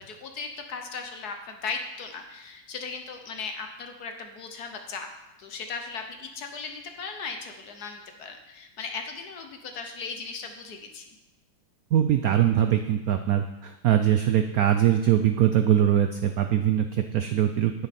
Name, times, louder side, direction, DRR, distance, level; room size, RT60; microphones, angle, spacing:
voice 1, 0.0-5.1 5.4-11.1, left 5 dB, 60° left, 5 dB, 1.3 m, -37 dB
voice 2, 11.9-17.7, right 10 dB, 85° right, 8 dB, 0.7 m, -22 dB
9.8 x 9.4 x 4.3 m, 0.96 s
omnidirectional pair, 2.2 m